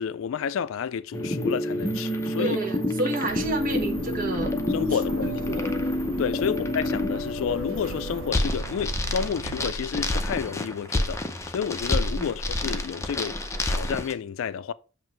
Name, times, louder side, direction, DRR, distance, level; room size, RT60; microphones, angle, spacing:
voice 1, 0.0-2.6 4.7-5.3 6.2-11.2 11.5-13.4 13.7-14.7, left 7 dB, 70° left, 0.3 m, -30 dB
sound 1, 1.1-14.1, left 1 dB, 15° left, 0.6 m, -28 dB
voice 2, 2.4-4.5 4.9-5.7 6.5-6.6 12.2-12.3, right 2 dB, 45° right, 1.1 m, -30 dB
sound 2, 3.3-9.7, right 5 dB, 80° right, 0.4 m, -39 dB
7.5 x 2.8 x 5.4 m
head